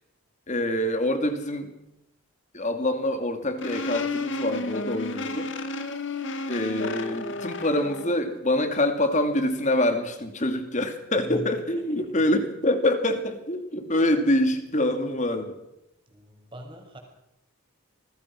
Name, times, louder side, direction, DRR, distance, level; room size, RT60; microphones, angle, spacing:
voice 1, 0.5-1.7 2.5-5.5 6.5-15.5, left 1 dB, 35° left, 7 dB, 2.6 m, -25 dB
sound 1, 3.6-8.1, left 2 dB, 55° left, 2.0 m, -32 dB
voice 2, 11.3-12.1 16.1-17.0, equal, 20° right, 2 dB, 5.7 m, -41 dB
27.5 x 20.5 x 6.1 m, 0.86 s
head